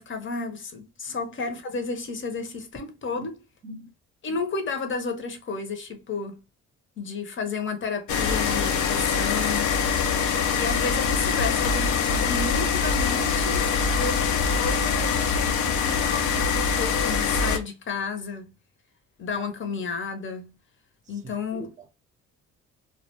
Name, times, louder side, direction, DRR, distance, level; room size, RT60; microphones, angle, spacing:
voice 1, 0.0-3.4 4.2-6.4 7.0-9.7 10.5-18.5 19.2-20.5 21.1-21.7, left 4 dB, 40° left, 0.7 m, -32 dB
voice 2, 3.6-3.9 21.0-21.9, right 1 dB, 25° right, 0.6 m, -43 dB
sound 1, 8.1-17.6, left 6 dB, 75° left, 0.5 m, -24 dB
2.3 x 2.2 x 2.8 m
cardioid pair, 90°, 30 cm